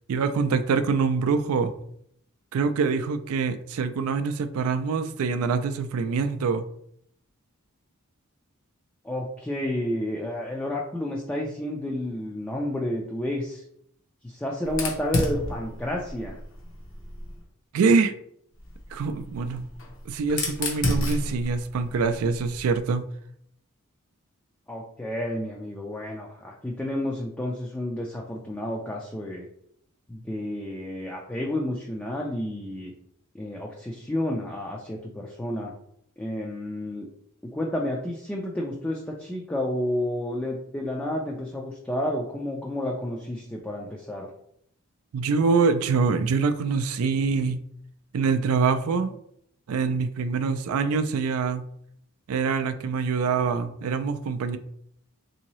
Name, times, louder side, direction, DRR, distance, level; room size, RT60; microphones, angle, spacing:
voice 1, 0.1-1.7 2.5-6.6 17.7-18.1 18.9-19.7 20.1-23.1 45.1-47.6 48.1-49.1 49.7-51.6 52.3-54.6, right 5 dB, 80° right, 10 dB, 0.3 m, -24 dB
voice 2, 9.0-13.6 14.2-16.4 24.7-29.5 30.1-32.9 33.3-35.7 36.2-37.1 37.4-44.3, left 1 dB, 10° left, -2 dB, 0.3 m, -31 dB
Fire, 14.7-17.4 18.6-22.8, left 1 dB, 60° left, 0.7 m, -32 dB
3.6 x 2.7 x 3.0 m, 0.70 s
head